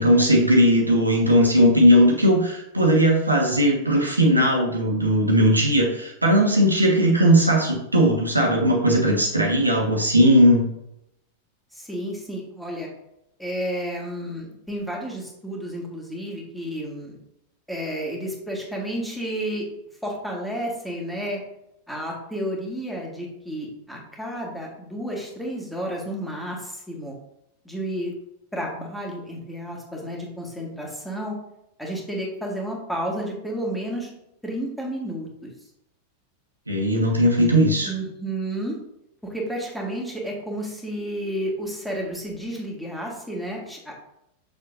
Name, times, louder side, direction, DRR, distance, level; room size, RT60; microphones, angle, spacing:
voice 1, 0.0-10.7 36.7-37.9, equal, 85° right, 0 dB, 1.4 m, -18 dB
voice 2, 11.7-12.9 13.4-17.2 17.7-19.7 20.0-21.4 21.9-27.2 27.7-28.1 28.5-31.4 31.8-34.1 34.4-35.5 37.8-38.8 39.2-44.0, right 1 dB, ahead, -2 dB, 1.9 m, -31 dB
6.8 x 6.5 x 2.6 m, 0.82 s
figure-of-eight pair, 90°, 0 cm